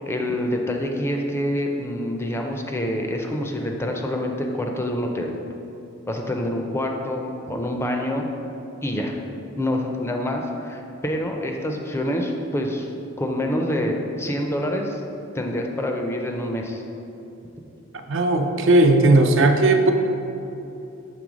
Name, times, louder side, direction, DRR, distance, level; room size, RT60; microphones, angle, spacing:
voice 1, 0.1-5.3 6.1-8.2 8.8-9.2 9.6-12.9 13.2-15.0 15.3-16.8, left 1 dB, 10° left, 2 dB, 0.4 m, -26 dB
voice 2, 18.1-19.9, right 2 dB, 65° right, 5 dB, 0.5 m, -16 dB
6.1 x 3.3 x 5.0 m, 2.9 s
head